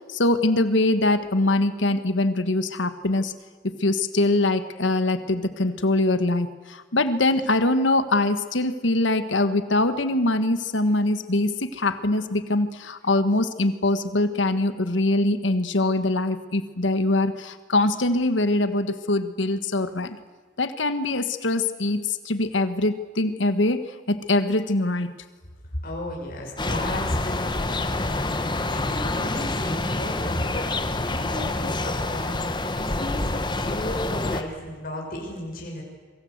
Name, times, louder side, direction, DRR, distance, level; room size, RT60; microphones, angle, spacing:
voice 1, 0.0-3.3 3.6-20.2 20.6-23.8 24.1-25.1, left 2 dB, 75° left, 11 dB, 1.5 m, -23 dB
voice 2, 25.8-35.8, left 1 dB, 50° left, -1 dB, 6.0 m, -34 dB
sound 1, 26.6-34.4, left 2 dB, 25° left, 1.5 m, -27 dB
26.5 x 24.0 x 8.1 m, 1.4 s
head